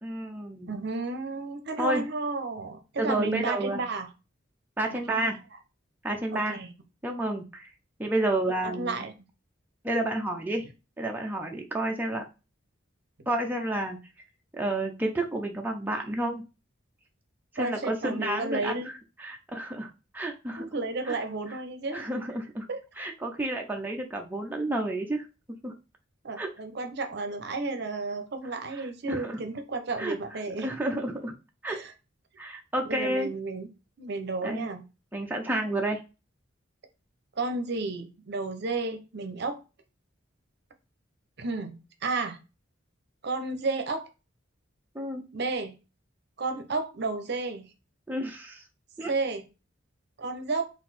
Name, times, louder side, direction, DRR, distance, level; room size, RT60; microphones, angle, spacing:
voice 1, 0.0-0.7 1.8-2.0 3.0-3.8 4.8-5.4 6.0-6.6 7.0-7.7 8.0-9.0 9.8-10.7 11.0-12.2 13.3-14.0 14.5-16.4 17.5-18.9 19.2-20.7 21.0-21.2 21.9-22.7 23.0-25.3 25.6-25.7 26.4-26.5 29.1-29.4 30.0-30.2 30.6-31.3 31.6-31.8 32.4-33.3 34.4-34.7 35.1-36.0 44.9-45.2 48.1-48.6 49.0-49.1, right 1 dB, 10° right, 0.5 m, -30 dB
voice 2, 0.7-4.1 4.9-5.4 6.3-6.7 8.6-9.1 17.6-18.9 20.6-22.1 22.7-22.8 26.2-30.7 31.7-31.9 32.9-33.7 34.0-34.9 37.4-39.6 41.4-42.4 43.2-44.1 45.3-45.8 46.4-47.7 49.0-49.5 50.2-50.7, right 3 dB, 55° right, 0.7 m, -32 dB
4.0 x 2.5 x 4.1 m
head